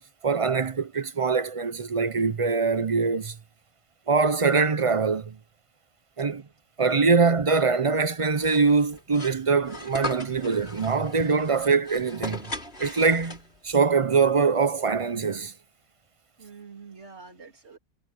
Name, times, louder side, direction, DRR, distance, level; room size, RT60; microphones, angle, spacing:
voice 1, 0.0-3.4 4.1-5.4 6.2-6.4 6.8-12.5 12.8-13.4 13.6-15.5, right 4 dB, 35° right, 0.7 m, -23 dB
sound 1, 8.4-13.7, left 2 dB, 70° left, 3.5 m, -38 dB
voice 2, 16.4-17.8, right 5 dB, 90° right, 3.4 m, -47 dB
omnidirectional pair, 1.1 m